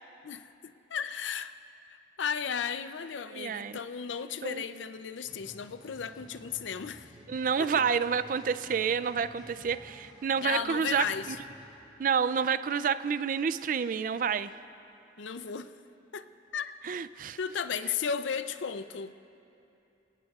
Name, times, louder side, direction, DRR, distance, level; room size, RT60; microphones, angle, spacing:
voice 1, 0.2-1.5 1.9-7.1 7.6-7.7 10.4-11.4 15.2-15.7 16.1-16.3 16.5-16.7 17.4-19.1, left 6 dB, 90° left, 12 dB, 0.5 m, -35 dB
voice 2, 3.3-3.8 4.4-4.6 7.3-11.4 12.0-14.5 16.8-17.4, right 6 dB, 45° right, 14 dB, 0.3 m, -29 dB
sound 1, 5.2-11.7, equal, 5° right, 4.1 m, -53 dB
24.5 x 18.5 x 2.4 m, 2.7 s
head